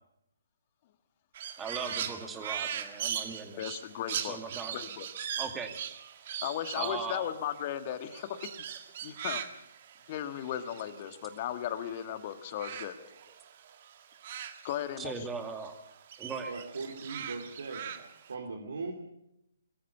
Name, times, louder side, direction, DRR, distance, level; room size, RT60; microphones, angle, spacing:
Crow, 1.3-12.0 12.3-15.3 15.6-18.3, right 9 dB, 45° right, 1.7 m, -40 dB
voice 1, 1.6-3.8 4.2-4.8 5.4-5.7 6.7-7.3 13.0-13.1 15.0-15.8 16.2-16.5, right 5 dB, 10° right, 5 dB, 2.4 m, -39 dB
voice 2, 3.6-4.4 4.7-5.1 6.4-8.5 9.0-9.4 10.1-13.0 14.6-15.3, left 11 dB, 35° left, 10 dB, 1.7 m, -36 dB
voice 3, 16.2-18.0 18.3-18.9, right 4 dB, 70° right, 1 dB, 3.1 m, -40 dB
22.5 x 14.0 x 8.2 m, 0.82 s
figure-of-eight pair, 135°, 0 cm